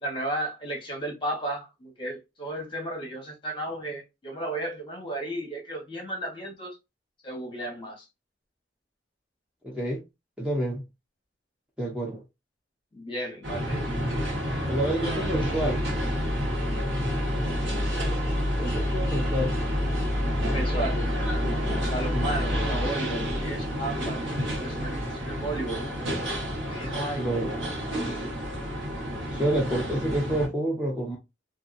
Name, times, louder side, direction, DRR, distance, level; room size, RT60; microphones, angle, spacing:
voice 1, 0.0-6.8 7.2-8.1 12.9-13.9 15.4-15.6 20.5-21.1 21.9-24.2 24.6-25.8 26.7-27.3 28.0-28.2, right 1 dB, 25° left, 1.1 m, -34 dB
voice 2, 9.6-10.0 10.4-10.8 11.8-12.2 14.7-15.8 18.6-19.6 22.1-22.3 27.2-27.5 29.3-31.2, right 1 dB, 5° right, 0.6 m, -28 dB
sound 1, 13.4-30.5, equal, 70° right, 1.3 m, -28 dB
2.7 x 2.6 x 2.5 m
head